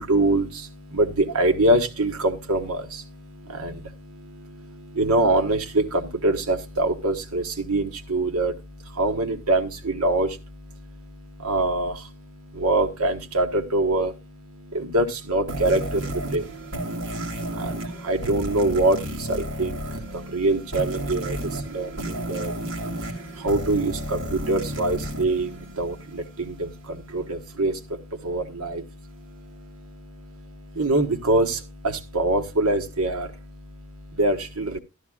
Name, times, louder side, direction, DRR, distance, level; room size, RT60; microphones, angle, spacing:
voice 1, 0.0-34.8, right 2 dB, 75° right, 5 dB, 1.3 m, -25 dB
sound 1, 15.5-26.3, right 1 dB, 60° right, 2.1 m, -32 dB
13.0 x 12.0 x 2.3 m, 0.23 s
head